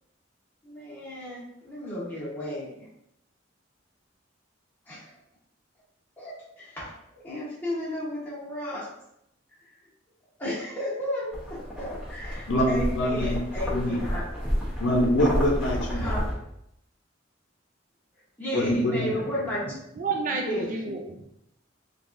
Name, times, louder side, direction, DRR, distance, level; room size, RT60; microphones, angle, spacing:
voice 1, 0.6-2.8 4.9-5.1 6.2-8.9 10.4-14.3 15.9-16.3 18.4-19.6 20.3-20.8, left 1 dB, 10° left, -9 dB, 1.1 m, -33 dB
sound 1, 11.3-16.3, equal, 5° right, 0.9 m, -30 dB
voice 2, 12.5-13.4 13.7-14.0 14.8-16.1 18.5-19.1, left 1 dB, 65° left, -1 dB, 0.7 m, -24 dB
voice 3, 19.7-21.2, right 4 dB, 45° right, 3 dB, 0.4 m, -31 dB
3.3 x 2.4 x 2.6 m, 0.78 s
head